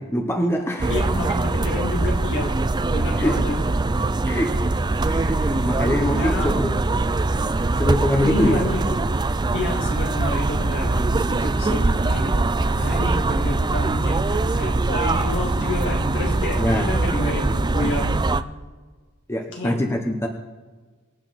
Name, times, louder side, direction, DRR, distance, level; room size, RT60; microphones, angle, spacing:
voice 1, 0.0-0.9 3.2-3.4 4.3-4.5 5.1-6.8 7.8-8.7 16.6-17.0 19.3-20.3, equal, 10° left, 3 dB, 0.9 m, -24 dB
sound 1, 0.8-18.4, right 2 dB, 20° right, 0.4 m, -22 dB
voice 2, 0.9-2.5 2.9-3.7 5.5-5.8 6.1-6.5 8.2-8.8 9.5-12.4 12.7-18.2 19.5-19.7, left 1 dB, 55° left, 0 dB, 2.7 m, -29 dB
24.5 x 8.9 x 4.2 m, 1.4 s
head